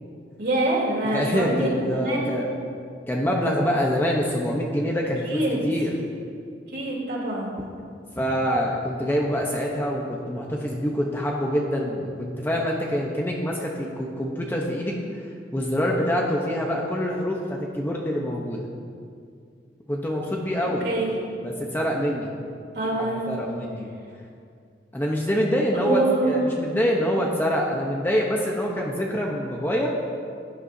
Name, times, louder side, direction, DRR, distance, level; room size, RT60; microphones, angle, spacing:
voice 1, 0.4-2.3 5.3-5.6 6.7-7.5 20.8-21.1 22.7-23.2 25.7-26.4, right 2 dB, 60° right, -4 dB, 3.3 m, -25 dB
voice 2, 1.1-2.5 3.1-5.9 8.2-14.9 15.5-18.7 19.9-20.9 21.4-22.3 23.0-23.9 24.9-29.9, equal, 10° left, -2 dB, 0.9 m, -25 dB
17.0 x 11.0 x 2.7 m, 2.3 s
head